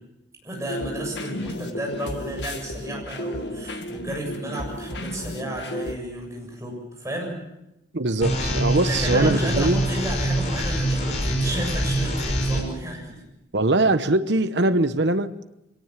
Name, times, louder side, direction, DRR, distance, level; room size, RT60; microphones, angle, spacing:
voice 1, 0.4-7.3 8.8-13.2, right 1 dB, 15° right, 7.2 m, -32 dB
sound 1, 0.7-5.9, left 1 dB, 75° left, 2.0 m, -33 dB
voice 2, 7.9-9.8 13.5-15.5, right 2 dB, 75° right, 1.1 m, -22 dB
sound 2, 8.2-12.6, right 1 dB, 40° left, 5.8 m, -24 dB
24.0 x 17.5 x 7.5 m
head